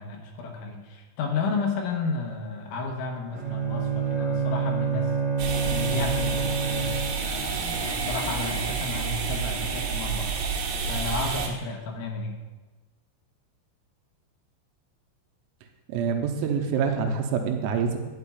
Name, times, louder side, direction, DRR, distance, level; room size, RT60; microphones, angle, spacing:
voice 1, 0.0-5.1 5.6-10.3 10.9-12.4, left 4 dB, 75° left, 1 dB, 3.3 m, -32 dB
Bowed string instrument, 3.3-7.4, right 5 dB, 25° right, 0.9 m, -27 dB
sound 1, 5.4-11.5, right 5 dB, 70° right, 3.6 m, -29 dB
voice 2, 15.9-18.0, right 6 dB, 90° right, 4 dB, 3.5 m, -26 dB
12.5 x 9.7 x 2.4 m, 1.2 s
omnidirectional pair, 5.9 m